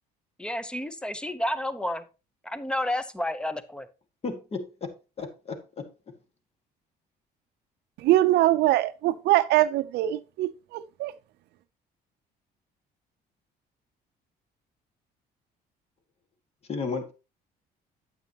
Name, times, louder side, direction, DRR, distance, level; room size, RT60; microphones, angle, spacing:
voice 1, 0.4-2.0 2.4-3.9, left 1 dB, 5° left, 0.8 m, -30 dB
voice 2, 4.2-4.9 5.2-5.9 16.7-17.1, left 4 dB, 35° left, 1.7 m, -33 dB
voice 3, 8.0-11.1, right 15 dB, 75° right, 0.6 m, -23 dB
9.0 x 7.9 x 2.9 m
cardioid pair, 110°, 17 cm